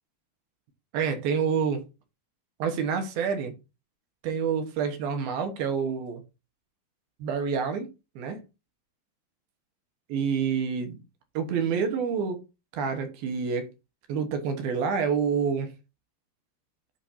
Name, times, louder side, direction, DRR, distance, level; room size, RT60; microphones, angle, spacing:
voice 1, 0.9-1.8 2.6-3.5 4.2-6.2 7.2-7.9 8.2-8.4 10.1-11.0 11.3-12.4 12.7-13.7 14.1-15.7, right 6 dB, 85° right, 3.1 m, -27 dB
8.3 x 5.9 x 2.8 m
omnidirectional pair, 4.2 m